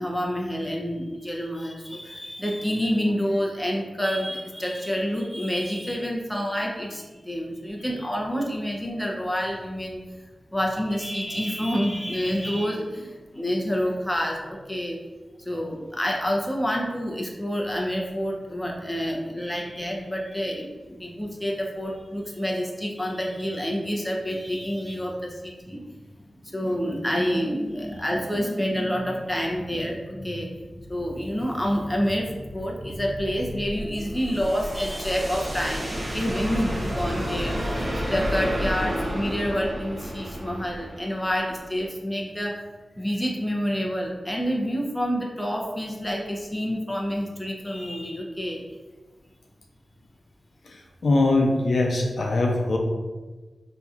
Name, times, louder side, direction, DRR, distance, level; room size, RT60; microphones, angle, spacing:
voice 1, 0.0-10.0 10.5-15.0 15.4-25.8 26.4-37.6 38.0-42.6 43.0-48.6, equal, 5° left, -1 dB, 0.6 m, -28 dB
sound 1, 33.0-41.9, equal, 40° right, 0.7 m, -31 dB
voice 2, 51.0-52.8, left 2 dB, 70° left, 0 dB, 0.5 m, -21 dB
4.5 x 2.7 x 2.4 m, 1.3 s
wide cardioid pair, 100°, 0 cm